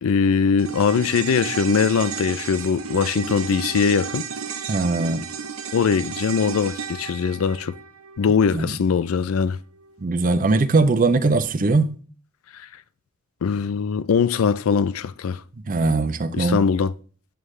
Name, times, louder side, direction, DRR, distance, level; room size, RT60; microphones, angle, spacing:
voice 1, 0.0-4.3 5.7-7.7 8.2-9.6 12.5-12.7 13.4-15.4 16.3-16.9, left 6 dB, 85° left, 0.4 m, -21 dB
sound 1, 0.6-9.1 9.3-9.4, right 6 dB, 90° right, 0.8 m, -33 dB
voice 2, 4.7-5.2 8.5-8.7 10.0-12.0 15.7-16.6, right 3 dB, 40° right, 0.5 m, -20 dB
9.2 x 6.5 x 3.2 m
head